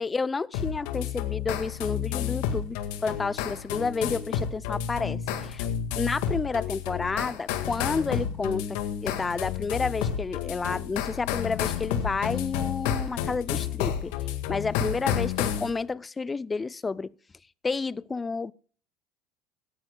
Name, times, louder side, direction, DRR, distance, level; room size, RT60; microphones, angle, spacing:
voice 1, 0.0-5.7 6.0-14.1 14.5-17.1 17.6-18.5, left 4 dB, 20° left, 0.5 m, -30 dB
sound 1, 0.5-15.7, left 9 dB, 75° left, 1.8 m, -30 dB
17.0 x 12.0 x 2.3 m
hypercardioid pair, 85°, 0 cm